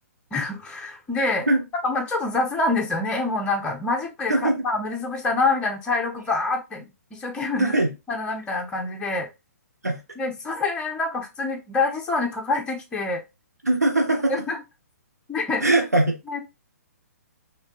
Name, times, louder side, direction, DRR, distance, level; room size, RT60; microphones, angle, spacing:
voice 1, 0.3-1.5 1.8-7.8 8.1-9.3 10.2-13.2 14.3-14.6 15.3-15.6 16.3-16.4, left 3 dB, 10° left, 0.7 m, -26 dB
voice 2, 4.3-4.6 7.6-7.9 9.8-10.0 13.6-14.3 15.6-16.2, right 2 dB, 80° right, 0.9 m, -21 dB
3.4 x 2.6 x 2.5 m
figure-of-eight pair, 125°, 9 cm